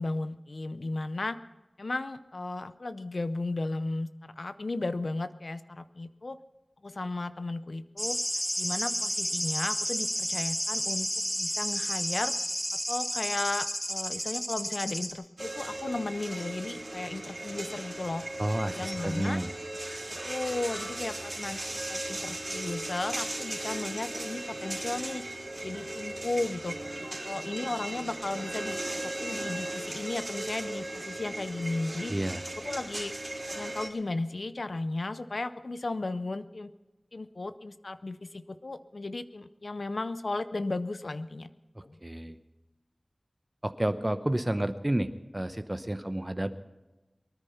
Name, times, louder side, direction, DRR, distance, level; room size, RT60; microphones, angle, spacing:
voice 1, 0.0-1.4 1.8-6.4 6.8-8.2 8.6-11.1 11.4-12.3 12.9-18.2 18.5-19.4 20.1-26.8 27.2-32.1 32.6-33.1 33.5-36.7 37.1-41.5 41.8-42.0, left 2 dB, 75° left, 12 dB, 0.6 m, -35 dB
sound 1, 8.0-15.1, equal, 15° left, 3.1 m, -31 dB
sound 2, 15.4-33.9, right 1 dB, 45° right, 3.6 m, -37 dB
voice 2, 18.4-19.5 32.1-32.4 42.0-42.4 43.6-46.6, right 1 dB, 25° right, 10 dB, 0.8 m, -30 dB
23.0 x 9.9 x 5.6 m, 1.1 s
wide cardioid pair, 40°, 0 cm